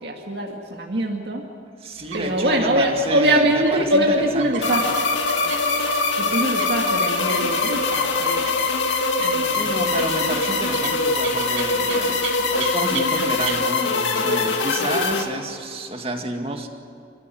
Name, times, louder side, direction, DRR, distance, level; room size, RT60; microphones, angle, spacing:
voice 1, 0.0-1.4 2.1-4.8 6.2-8.5 9.2-9.7, right 1 dB, 60° right, 0 dB, 2.1 m, -22 dB
voice 2, 1.8-4.8 9.5-16.7, right 1 dB, 30° right, 4 dB, 2.1 m, -30 dB
sound 1, 2.0-13.7, right 5 dB, 90° right, 2.7 m, -37 dB
sound 2, 4.6-15.2, left 3 dB, 80° left, 2.4 m, -22 dB
29.0 x 15.0 x 9.3 m, 2.4 s
head